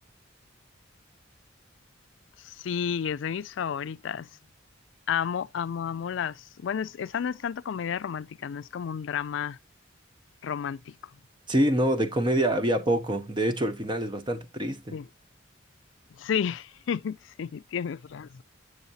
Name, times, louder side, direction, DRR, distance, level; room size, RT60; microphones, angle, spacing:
voice 1, 2.4-4.3 5.1-9.6 10.4-11.0 14.9-15.1 16.2-18.4, left 7 dB, 70° left, 0.4 m, -31 dB
voice 2, 11.5-14.9, right 1 dB, 25° right, 0.7 m, -26 dB
8.1 x 6.4 x 2.7 m
head